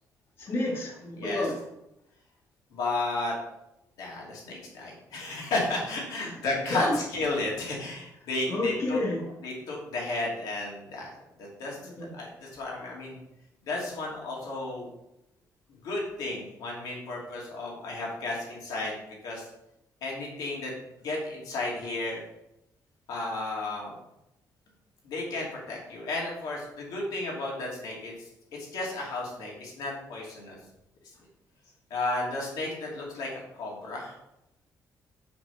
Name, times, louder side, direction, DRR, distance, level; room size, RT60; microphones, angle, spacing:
voice 1, 0.4-1.6 6.2-6.3 6.7-7.0 8.5-9.3 11.8-12.2, left 2 dB, 40° left, -4 dB, 1.9 m, -30 dB
voice 2, 2.7-3.3 4.0-9.0 9.4-11.8 12.2-13.2 13.6-14.9 15.8-19.0 19.2-19.4 20.0-20.7 21.0-22.2 23.1-24.0 25.0-28.1 28.7-30.6 31.9-34.1, left 2 dB, 80° left, -2 dB, 2.5 m, -33 dB
6.0 x 5.2 x 5.7 m, 0.86 s
cardioid pair, 140°, 6 cm